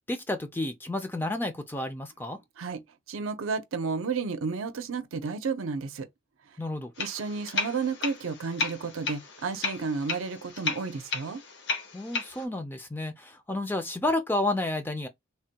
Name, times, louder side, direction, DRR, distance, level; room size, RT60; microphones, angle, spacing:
voice 1, 0.1-2.4 6.6-6.9 11.9-15.1, left 2 dB, 10° left, 0.4 m, -31 dB
voice 2, 3.1-6.1 7.0-11.4, right 4 dB, 85° right, 0.5 m, -32 dB
sound 1, 7.0-12.5, left 4 dB, 55° left, 0.7 m, -34 dB
3.4 x 2.2 x 2.7 m
head